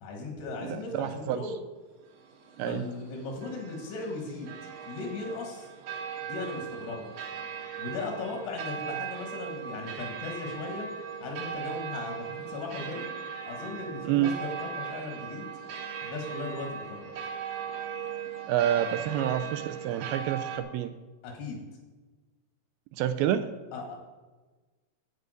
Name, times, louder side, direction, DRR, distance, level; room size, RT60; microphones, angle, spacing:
voice 1, 0.0-1.5 2.7-4.6 4.9-5.7 6.2-7.1 7.8-10.9 11.2-13.2 13.5-15.5 16.0-17.1 21.2-21.6 23.7-24.1, left 3 dB, 85° left, 1 dB, 3.7 m, -37 dB
voice 2, 0.6-1.4 2.6-2.8 14.1-14.3 18.5-20.9 22.9-23.5, right 11 dB, 80° right, 9 dB, 2.3 m, -28 dB
sound 1, 2.0-20.6, right 7 dB, 65° right, 2.8 m, -39 dB
10.5 x 8.4 x 5.1 m, 1.3 s
omnidirectional pair, 4.5 m